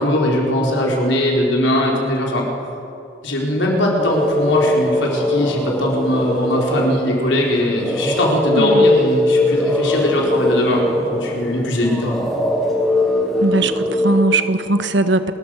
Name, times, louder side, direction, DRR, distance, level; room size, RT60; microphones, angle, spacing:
voice 1, 0.0-2.4 3.2-12.3, left 1 dB, 85° left, -1 dB, 4.4 m, -20 dB
sound 1, 4.0-14.2, left 1 dB, ahead, 3.3 m, -20 dB
voice 2, 8.5-8.9 13.4-15.3, right 2 dB, 80° right, 10 dB, 1.2 m, -19 dB
30.0 x 14.0 x 6.5 m, 2.8 s
head